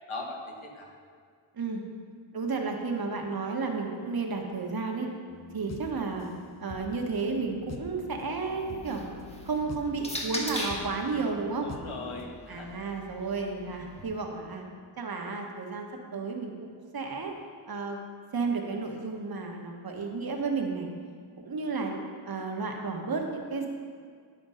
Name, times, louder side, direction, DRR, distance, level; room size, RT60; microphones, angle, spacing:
voice 1, 0.1-0.9 11.6-12.8, left 2 dB, 80° left, 0 dB, 1.5 m, -39 dB
voice 2, 2.3-5.1 5.5-6.3 6.6-9.0 9.5-11.7 12.5-14.6 15.0-16.7 16.9-17.3 17.7-18.0 18.3-20.9 21.4-22.0 22.3-23.7, right 4 dB, 45° right, 2 dB, 1.2 m, -32 dB
sound 1, 5.3-12.3, left 3 dB, 35° left, 0.7 m, -45 dB
sound 2, 8.5-11.0 11.9-14.0, equal, 15° left, 1.2 m, -39 dB
10.5 x 4.3 x 5.6 m, 2.1 s
wide cardioid pair, 90°, 48 cm